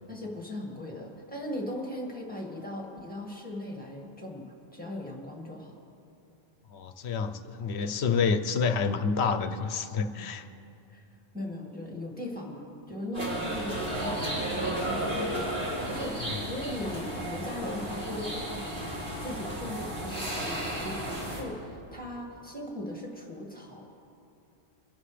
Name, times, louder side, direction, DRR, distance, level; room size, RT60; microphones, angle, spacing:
voice 1, 0.1-5.7 10.9-11.0 11.3-18.8 19.2-23.8, left 1 dB, 5° left, -2 dB, 1.9 m, -38 dB
voice 2, 6.7-10.5, left 5 dB, 65° left, 9 dB, 0.9 m, -28 dB
sound 1, 13.1-21.4, right 1 dB, 55° right, 3.3 m, -33 dB
25.0 x 11.5 x 3.3 m, 2.8 s
omnidirectional pair, 1.2 m